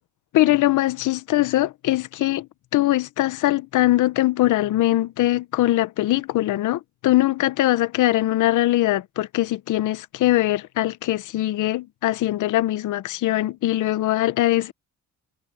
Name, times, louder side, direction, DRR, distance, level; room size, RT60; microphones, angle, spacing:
voice 1, 0.3-2.5 2.7-14.7, left 15 dB, 80° left, 1.0 m, -21 dB
cardioid pair, 90°, 30 cm